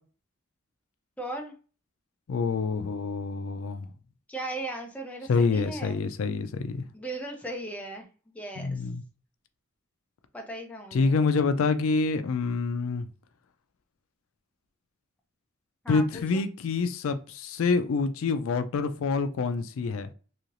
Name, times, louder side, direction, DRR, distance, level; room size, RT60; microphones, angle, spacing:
voice 1, 1.2-1.5 4.3-6.0 6.9-8.1 8.3-8.8 10.3-11.2 15.8-16.4, right 1 dB, 5° left, 0.6 m, -37 dB
voice 2, 2.3-3.9 5.3-6.8 8.6-9.0 10.9-13.1 15.9-20.1, left 4 dB, 80° left, 0.4 m, -27 dB
3.1 x 2.8 x 2.5 m
head